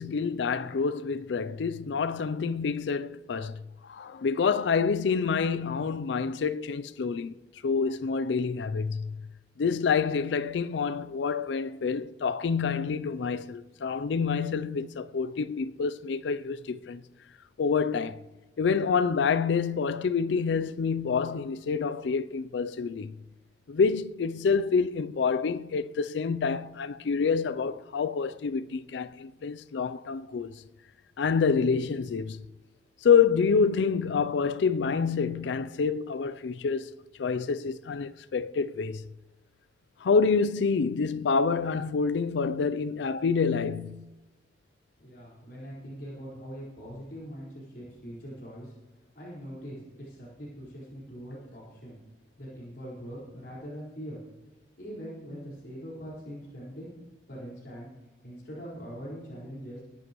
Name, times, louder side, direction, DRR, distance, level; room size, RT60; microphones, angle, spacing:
voice 1, 0.0-7.3 7.6-9.3 9.6-17.0 17.6-18.2 18.6-23.2 23.7-30.5 31.2-32.4 33.0-36.9 37.2-39.0 40.0-44.1, left 5 dB, 75° left, 0.4 m, -27 dB
voice 2, 45.0-48.7 49.1-52.0 52.4-54.2 54.8-56.9 57.3-57.9 58.2-59.8, equal, 60° left, 4.5 m, -42 dB
20.5 x 11.0 x 3.0 m
head